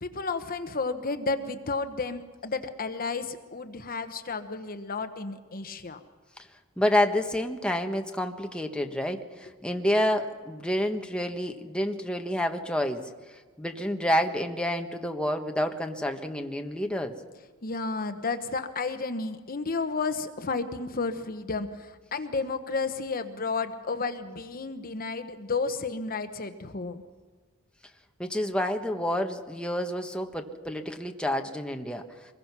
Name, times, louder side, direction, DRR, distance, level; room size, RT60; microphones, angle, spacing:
voice 1, 0.0-6.0 17.6-27.0, left 4 dB, 40° left, 9 dB, 1.1 m, -32 dB
voice 2, 6.8-13.1 13.6-17.1 28.2-32.0, left 1 dB, 5° left, 4 dB, 1.3 m, -28 dB
24.5 x 21.5 x 6.1 m, 1.4 s
head